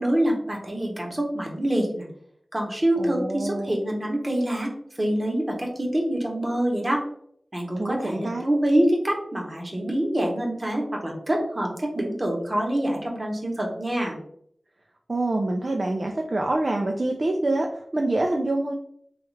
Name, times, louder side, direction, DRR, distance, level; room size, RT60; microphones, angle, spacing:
voice 1, 0.0-2.1 2.5-4.7 5.0-7.0 7.5-14.2, right 1 dB, 35° right, 0 dB, 1.0 m, -25 dB
voice 2, 3.0-3.7 7.8-8.4 15.1-18.7, right 2 dB, 55° right, 1 dB, 0.3 m, -26 dB
3.1 x 2.3 x 3.2 m, 0.67 s
cardioid pair, 45°, 0 cm